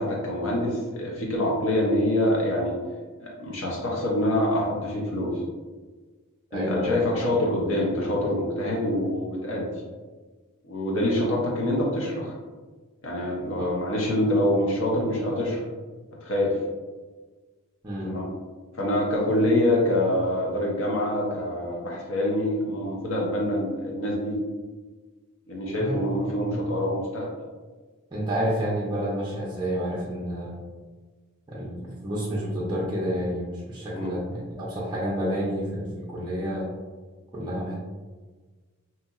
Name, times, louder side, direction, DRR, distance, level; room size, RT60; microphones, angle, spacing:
voice 1, 0.0-2.7 3.2-5.3 6.5-9.7 10.6-12.3 13.0-15.6 16.2-16.6 18.1-18.3 18.8-24.4 25.5-27.3 33.9-34.1, left 1 dB, 60° left, -3 dB, 0.6 m, -25 dB
voice 2, 6.5-7.0 13.6-13.8 17.8-18.1 25.8-26.6 28.1-30.6 31.5-36.7 37.3-37.8, equal, 20° right, -7 dB, 0.4 m, -29 dB
2.8 x 2.7 x 2.4 m, 1.4 s
head